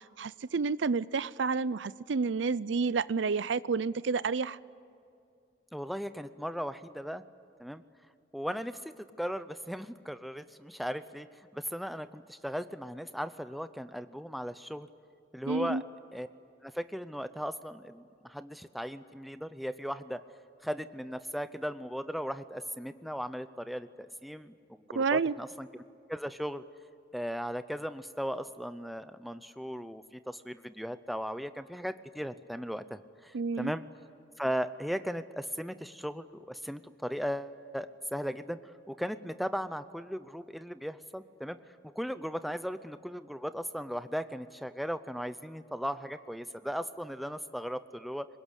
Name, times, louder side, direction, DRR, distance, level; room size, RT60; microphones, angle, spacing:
voice 1, 0.0-4.6 15.5-15.8 24.9-25.3 33.3-33.7, right 4 dB, 80° right, 18 dB, 0.5 m, -30 dB
voice 2, 5.7-7.2 7.6-7.8 8.3-11.3 11.5-14.9 15.3-15.8 16.1-16.3 16.6-20.2 20.6-25.8 26.1-26.6 27.1-33.8 34.4-41.6 41.8-48.3, equal, ahead, 11 dB, 0.5 m, -37 dB
24.0 x 21.0 x 9.9 m, 2.4 s
head